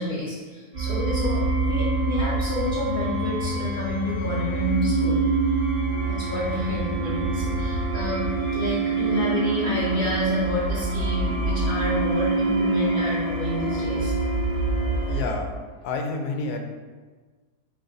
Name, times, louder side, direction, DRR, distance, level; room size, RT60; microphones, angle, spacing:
voice 1, 0.0-5.2 6.1-14.1, left 1 dB, 45° left, -8 dB, 0.8 m, -28 dB
sound 1, 0.7-15.3, right 3 dB, 45° right, 1.3 m, -26 dB
voice 2, 15.1-15.5 15.8-16.6, left 3 dB, 80° left, 4 dB, 1.1 m, -29 dB
3.8 x 3.3 x 4.0 m, 1.4 s
omnidirectional pair, 1.7 m